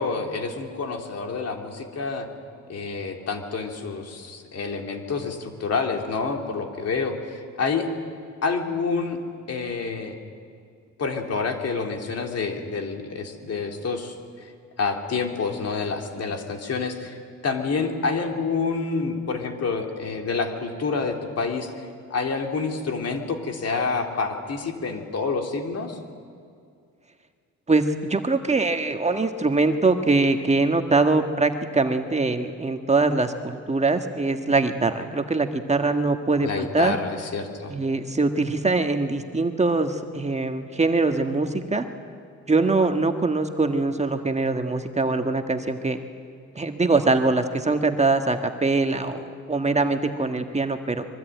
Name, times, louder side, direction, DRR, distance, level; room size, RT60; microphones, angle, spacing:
voice 1, 0.0-2.3 2.7-7.9 8.4-9.2 9.5-10.2 11.0-14.5 14.8-17.2 17.4-26.0 36.4-37.7, left 4 dB, 55° left, 3 dB, 3.3 m, -28 dB
voice 2, 27.7-37.0 37.7-41.9 42.5-46.0 46.6-51.0, right 3 dB, 20° right, 6 dB, 1.6 m, -23 dB
25.0 x 22.5 x 9.3 m, 2.3 s
cardioid pair, 90°, 30 cm